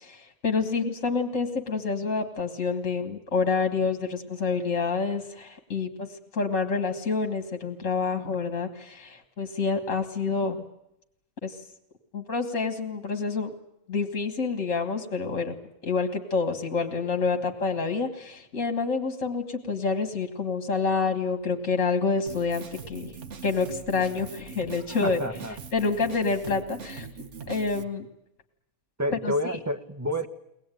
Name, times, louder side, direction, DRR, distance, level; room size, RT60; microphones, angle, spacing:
voice 1, 0.0-6.1 6.3-10.6 11.4-11.6 12.1-13.5 13.9-15.6 15.8-23.2 23.4-25.2 25.7-27.1 27.5-28.1 29.2-29.3, left 4 dB, 60° left, 6 dB, 2.1 m, -28 dB
Drum kit, 22.3-27.8, right 5 dB, 55° right, 1.4 m, -42 dB
voice 2, 25.0-25.6 29.0-30.3, equal, 10° right, 6 dB, 1.1 m, -29 dB
23.0 x 19.5 x 9.1 m, 0.82 s
omnidirectional pair, 1.5 m